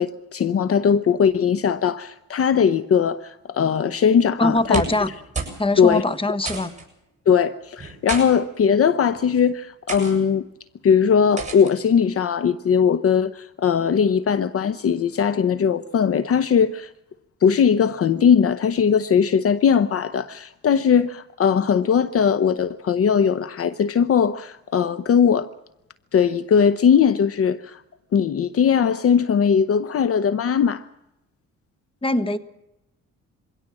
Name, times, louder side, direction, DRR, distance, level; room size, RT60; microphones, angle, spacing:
voice 1, 0.0-4.8 5.8-6.0 7.3-10.5 10.8-16.9 17.4-25.5 26.1-27.8 28.1-30.8, left 7 dB, 50° left, 0.8 m, -19 dB
voice 2, 4.4-5.1 5.6-6.7 32.0-32.4, left 2 dB, 20° left, 1.5 m, -22 dB
sound 1, 4.6-5.1 5.3-5.6 5.9-6.0 6.5-6.8 7.8-8.3 9.0-9.3 9.9-10.1 11.4-11.7, right 4 dB, 25° right, 7.3 m, -30 dB
23.0 x 17.0 x 7.4 m
cardioid pair, 90°, 30 cm